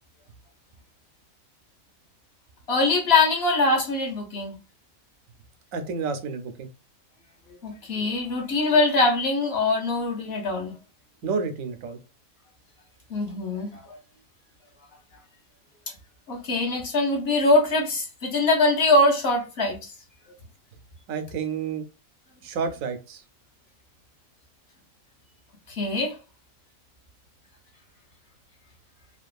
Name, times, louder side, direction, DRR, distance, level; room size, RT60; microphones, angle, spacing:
voice 1, 2.7-4.5 7.6-10.7 13.1-14.0 15.9-16.0 16.3-19.9 25.7-26.2, left 2 dB, 55° left, 0.9 m, -23 dB
voice 2, 5.7-6.7 11.2-12.0 21.1-21.8 22.4-23.2, right 5 dB, 85° right, 1.0 m, -30 dB
2.9 x 2.3 x 2.3 m
omnidirectional pair, 1.4 m